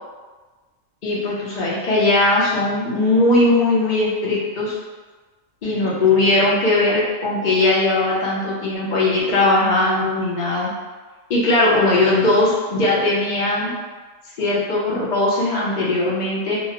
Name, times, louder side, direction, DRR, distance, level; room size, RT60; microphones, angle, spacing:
voice 1, 1.0-4.7 5.6-10.7 11.3-13.7 14.4-16.6, left 2 dB, 50° left, -5 dB, 0.6 m, -19 dB
2.7 x 2.1 x 2.8 m, 1.3 s
omnidirectional pair, 1.4 m